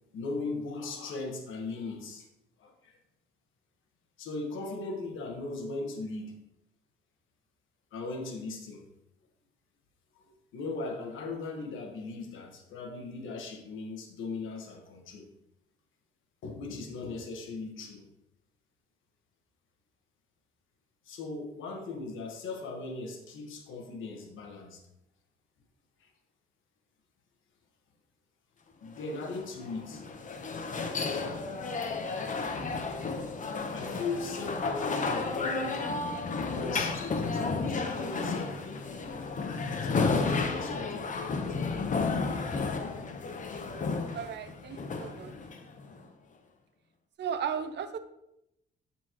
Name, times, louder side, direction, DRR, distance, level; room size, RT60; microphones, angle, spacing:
voice 1, 0.1-2.3 2.6-3.0 4.2-6.4 7.9-8.9 10.1-15.3 16.4-18.1 21.0-24.8 26.0-26.1 28.8-30.0 33.7-35.9 36.4-38.6 39.8-41.6, left 3 dB, 80° left, 1.4 m, -38 dB
sound 1, 29.0-46.0, left 4 dB, 40° left, 1.0 m, -32 dB
voice 2, 44.1-45.3 47.2-48.0, right 7 dB, 60° right, 0.7 m, -35 dB
12.0 x 4.4 x 3.0 m
cardioid pair, 90°, 20 cm